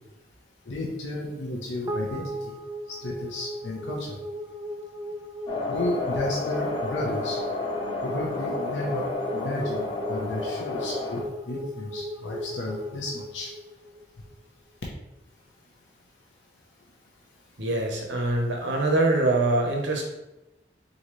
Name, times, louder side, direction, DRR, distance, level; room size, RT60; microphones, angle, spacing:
voice 1, 0.7-2.6 2.9-4.1 5.7-7.4 8.0-11.2 11.5-13.5, left 1 dB, 85° left, -3 dB, 0.8 m, -33 dB
sound 1, 1.9-14.4, equal, 20° right, 0.5 m, -37 dB
sound 2, 5.5-11.2, left 2 dB, 25° left, 0.6 m, -31 dB
voice 2, 17.6-20.0, right 2 dB, 85° right, 1 dB, 0.9 m, -24 dB
3.9 x 3.9 x 3.1 m, 0.93 s
head